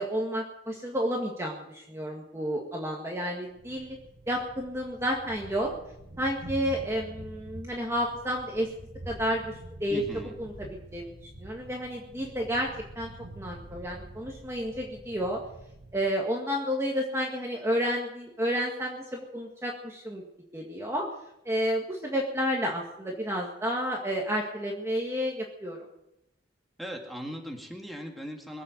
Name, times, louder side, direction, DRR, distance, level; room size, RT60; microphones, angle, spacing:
voice 1, 0.0-4.0 4.3-5.7 6.2-8.7 9.1-10.0 10.4-11.1 11.4-12.7 13.0-15.4 15.9-20.2 20.5-21.1 21.5-25.8, equal, 15° right, -1 dB, 1.9 m, -31 dB
Thunder, 3.5-16.2, right 1 dB, 85° right, 1.4 m, -46 dB
voice 2, 9.9-10.4 26.8-28.6, equal, ahead, 1 dB, 2.0 m, -38 dB
22.5 x 8.1 x 7.9 m, 0.86 s
head